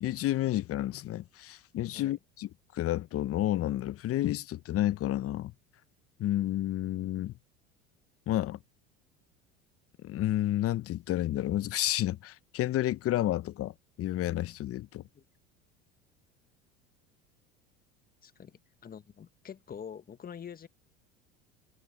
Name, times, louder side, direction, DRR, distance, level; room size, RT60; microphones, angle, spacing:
voice 1, 0.0-5.5 6.2-7.3 8.3-8.6 10.0-13.7 14.0-15.0, left 14 dB, 45° left, 1.2 m, -30 dB
voice 2, 18.2-20.7, left 8 dB, 30° left, 1.4 m, -45 dB
hypercardioid pair, 80°, 31 cm